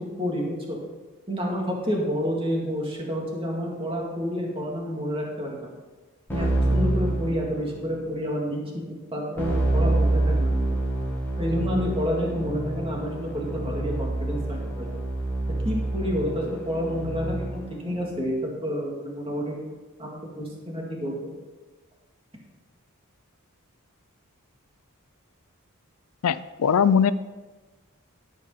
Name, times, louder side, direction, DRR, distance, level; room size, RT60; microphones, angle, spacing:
voice 1, 0.2-0.8 1.3-5.7 6.3-8.8 9.1-10.7 11.4-14.9 15.6-18.4 18.6-19.7 20.0-21.3, equal, 25° right, -2 dB, 2.2 m, -29 dB
Keyboard (musical), 6.3-8.0 9.4-17.8, right 2 dB, 10° left, 2.0 m, -27 dB
voice 2, 26.2-27.1, left 7 dB, 80° left, 16 dB, 0.4 m, -20 dB
13.0 x 5.1 x 5.7 m, 1.3 s
head